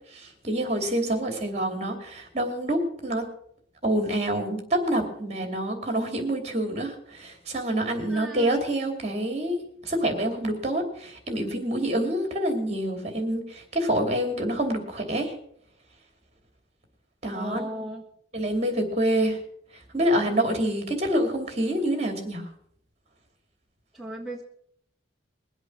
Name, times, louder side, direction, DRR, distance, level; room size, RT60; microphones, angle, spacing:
voice 1, 0.1-3.3 3.8-15.3 17.2-17.8 18.3-19.4 19.9-22.5, right 1 dB, 35° right, 5 dB, 2.8 m, -27 dB
voice 2, 8.1-8.5 17.3-18.1 23.9-24.4, right 1 dB, ahead, -4 dB, 1.6 m, -35 dB
21.5 x 8.0 x 6.2 m, 0.67 s
head